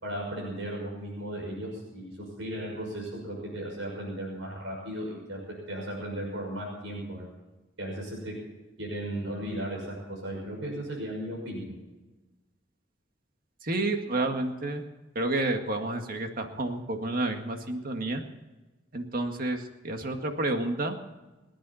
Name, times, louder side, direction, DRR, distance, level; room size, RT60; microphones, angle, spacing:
voice 1, 0.0-2.1 2.4-7.3 7.8-8.3 8.8-11.7, right 1 dB, 90° right, -2 dB, 6.0 m, -36 dB
voice 2, 13.6-14.8 15.2-18.2 18.9-21.0, right 2 dB, 50° right, 4 dB, 2.0 m, -30 dB
29.0 x 10.0 x 4.3 m, 1.1 s
head